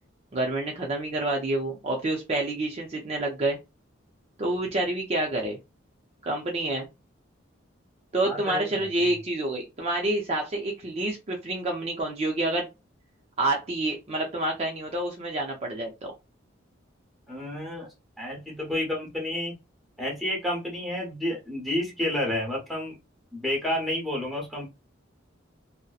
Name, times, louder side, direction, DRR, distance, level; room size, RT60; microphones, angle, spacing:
voice 1, 0.3-3.6 4.4-5.6 6.2-6.9 8.1-12.7 13.4-16.1, right 2 dB, 35° right, 0 dB, 0.5 m, -28 dB
voice 2, 8.2-8.9 17.3-19.5 20.0-22.9 23.3-24.7, left 1 dB, ahead, -1 dB, 0.9 m, -30 dB
2.6 x 2.1 x 2.3 m, 0.25 s
head